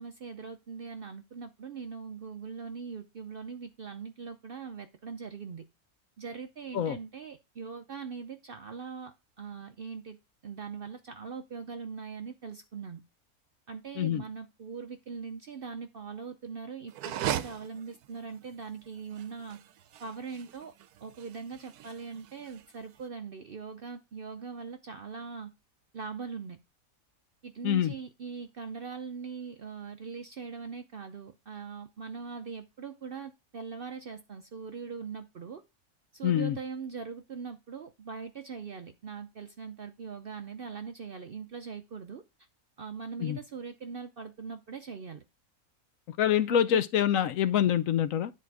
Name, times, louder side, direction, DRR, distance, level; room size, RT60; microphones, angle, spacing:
voice 1, 0.0-5.6 6.2-10.2 10.4-13.0 13.7-19.6 20.0-20.7 21.0-25.5 25.9-26.6 27.4-35.6 36.1-42.2 42.8-45.2 46.5-46.8, right 5 dB, 55° right, 0.6 m, -41 dB
sound 1, 16.9-23.0, right 12 dB, 85° right, 1.1 m, -39 dB
voice 2, 27.6-27.9 36.2-36.6 43.2-43.4 46.1-48.3, left 10 dB, 70° left, 1.0 m, -26 dB
10.0 x 4.3 x 4.6 m
omnidirectional pair, 1.6 m